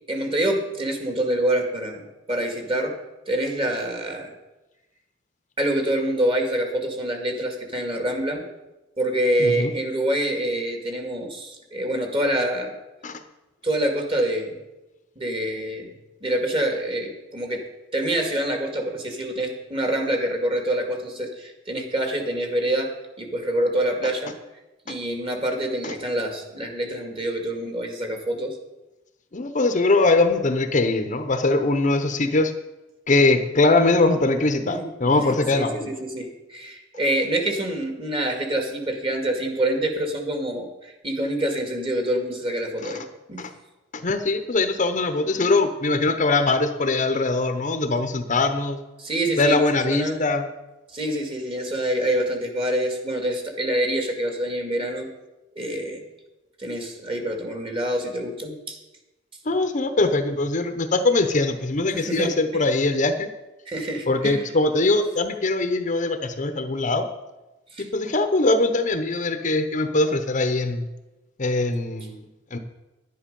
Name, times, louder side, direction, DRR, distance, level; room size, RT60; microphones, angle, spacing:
voice 1, 0.1-2.9 3.3-4.3 5.6-8.4 9.0-12.8 13.6-14.6 15.2-15.9 16.2-17.6 17.9-22.9 23.2-24.3 24.9-28.6 34.6-43.0 43.3-43.5 49.0-49.6 49.9-50.2 50.9-55.1 55.6-56.0 56.6-58.8 60.0-60.1 61.9-62.4 63.7-64.5 67.7-67.9, right 1 dB, 30° right, 3 dB, 2.0 m, -26 dB
voice 2, 9.4-9.7 13.0-13.2 25.8-25.9 29.3-32.5 33.1-35.9 42.8-42.9 43.4-43.5 43.9-48.8 49.4-50.4 59.5-63.3 64.1-67.1 67.8-70.9 71.4-72.6, left 2 dB, 40° left, 8 dB, 0.8 m, -22 dB
11.0 x 10.0 x 5.4 m, 1.0 s
head